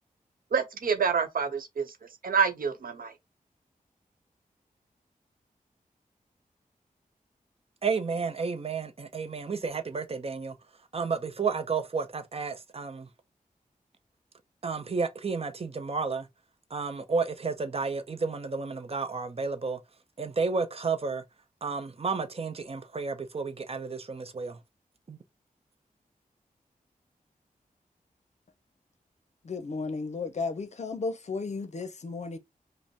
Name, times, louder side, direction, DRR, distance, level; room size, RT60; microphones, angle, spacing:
voice 1, 0.5-1.8 2.2-3.1, right 6 dB, 75° right, 0.8 m, -27 dB
voice 2, 7.8-10.5 10.9-13.1 14.6-16.3 16.7-19.8 20.2-21.2 21.6-24.6 25.1-25.2, right 4 dB, 45° right, 0.6 m, -31 dB
voice 3, 29.4-32.4, left 4 dB, 50° left, 0.6 m, -34 dB
5.2 x 2.1 x 2.8 m
wide cardioid pair, 100°, 15 cm